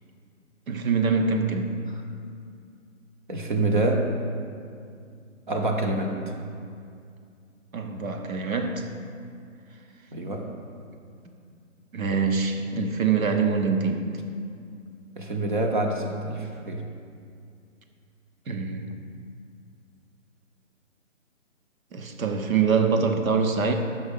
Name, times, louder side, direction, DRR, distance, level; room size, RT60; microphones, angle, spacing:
voice 1, 0.7-1.8 7.7-8.9 11.9-14.1 18.5-18.9 21.9-23.7, right 5 dB, 90° right, 5 dB, 0.9 m, -24 dB
voice 2, 3.3-4.1 5.5-6.3 10.1-10.5 15.2-16.9, right 2 dB, 40° right, 2 dB, 0.6 m, -26 dB
6.2 x 5.4 x 5.2 m, 2.3 s
hypercardioid pair, 155°, 40 cm